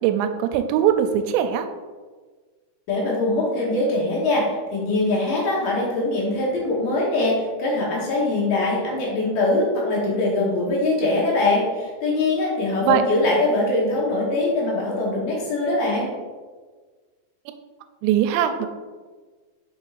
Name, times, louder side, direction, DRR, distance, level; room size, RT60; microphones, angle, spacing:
voice 1, 0.0-1.7 12.8-13.0 17.5-17.6 18.0-18.7, right 10 dB, 90° right, 8 dB, 2.7 m, -21 dB
voice 2, 2.9-16.1, left 2 dB, 65° left, -4 dB, 2.5 m, -22 dB
6.8 x 6.1 x 2.4 m, 1.4 s
omnidirectional pair, 4.8 m